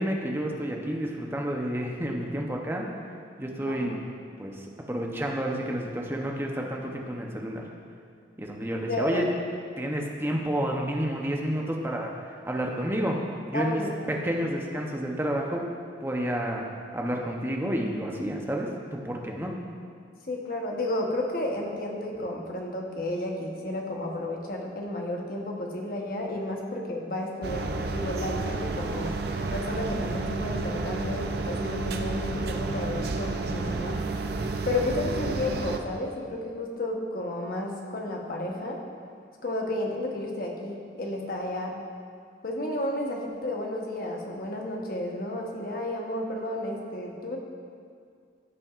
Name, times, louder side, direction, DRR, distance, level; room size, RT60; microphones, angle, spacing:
voice 1, 0.0-2.9 3.4-4.0 4.4-7.6 8.4-9.2 9.8-13.2 13.5-13.8 14.1-15.7 16.0-16.7 16.9-19.6, equal, 10° right, 0 dB, 0.7 m, -30 dB
voice 2, 3.6-4.0 8.9-9.3 13.5-14.4 20.3-29.2 29.5-34.0 34.7-38.8 39.4-41.7 42.4-47.4, left 1 dB, 50° left, 0 dB, 1.0 m, -32 dB
sound 1, 27.4-35.8, right 3 dB, 55° right, 0.5 m, -31 dB
15.0 x 5.9 x 2.5 m, 2.2 s
head